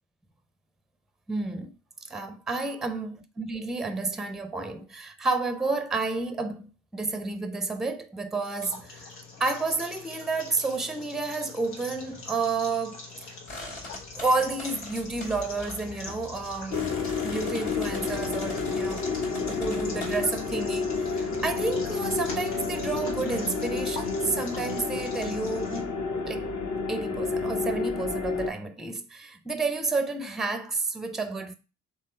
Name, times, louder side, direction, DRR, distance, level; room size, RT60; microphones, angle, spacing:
voice 1, 1.3-1.8 2.0-9.1 9.4-13.3 14.1-16.9 17.2-25.9 26.3-26.5 26.9-31.5, right 3 dB, ahead, 0.5 m, -30 dB
sound 1, 8.4-25.8, left 3 dB, 90° left, 1.0 m, -44 dB
sound 2, 13.5-20.2, left 1 dB, 70° left, 2.2 m, -42 dB
sound 3, 16.7-28.5, left 4 dB, 50° left, 1.0 m, -30 dB
3.6 x 3.1 x 4.2 m
hypercardioid pair, 45°, 38 cm